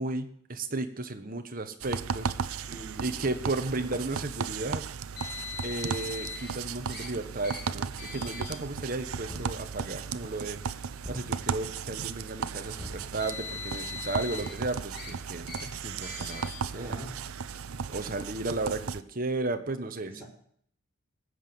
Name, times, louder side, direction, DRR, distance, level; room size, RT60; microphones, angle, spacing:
voice 1, 0.0-2.7 3.0-4.9 5.6-10.6 11.1-17.0 17.9-20.1, right 2 dB, 40° right, 7 dB, 1.3 m, -34 dB
sound 1, 1.8-19.0, right 6 dB, 80° right, 0.6 m, -36 dB
voice 2, 2.7-3.6 16.7-17.2 18.0-18.2 20.0-20.2, right 1 dB, 10° right, -3 dB, 5.1 m, -45 dB
Car, 5.2-6.5 6.9-7.1 7.4-7.6 8.0-8.6 9.4-9.6 10.5-10.6 12.9-14.5 14.9-15.1 15.5-15.7 16.0-16.6, left 5 dB, 50° left, 3.1 m, -40 dB
sound 2, 9.3-10.0 11.0-11.8 12.8-13.5, left 1 dB, 10° left, 0.9 m, -45 dB
19.0 x 8.1 x 7.0 m, 0.64 s
head